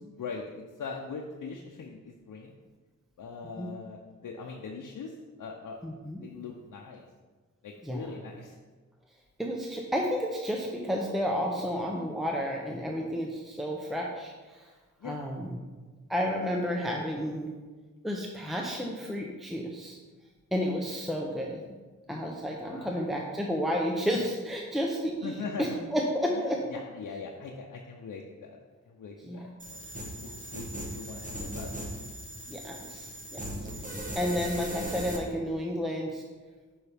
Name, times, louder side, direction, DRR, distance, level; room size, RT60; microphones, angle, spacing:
voice 1, 0.2-2.5 3.2-5.8 6.2-7.0 7.6-8.6 15.0-15.3 22.6-23.1 25.2-25.8 26.3-28.6 28.9-29.8 30.2-31.7, left 5 dB, 85° left, 0 dB, 0.7 m, -41 dB
voice 2, 5.8-6.2 7.8-8.1 9.4-14.7 15.0-15.6 16.1-17.5 18.0-20.0 20.5-21.8 22.1-26.6 29.2-29.6 30.2-30.3 32.5-33.4 34.1-36.2, equal, ahead, 0 dB, 0.7 m, -31 dB
sound 1, 29.6-35.2, right 1 dB, 25° right, 1.4 m, -38 dB
8.6 x 5.6 x 3.5 m, 1.3 s
wide cardioid pair, 115°, 31 cm